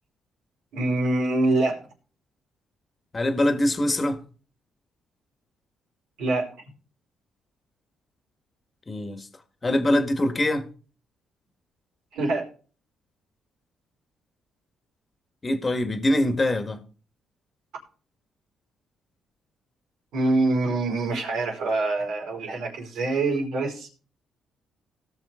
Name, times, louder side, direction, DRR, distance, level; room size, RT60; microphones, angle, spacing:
voice 1, 0.7-1.8 6.2-6.5 12.1-12.5 20.1-23.9, right 2 dB, 85° right, 5.0 m, -25 dB
voice 2, 3.1-4.2 8.9-9.3 9.6-10.7 15.4-16.8, left 1 dB, 25° left, 1.7 m, -23 dB
18.5 x 6.2 x 3.8 m
cardioid pair, 90°, 0 cm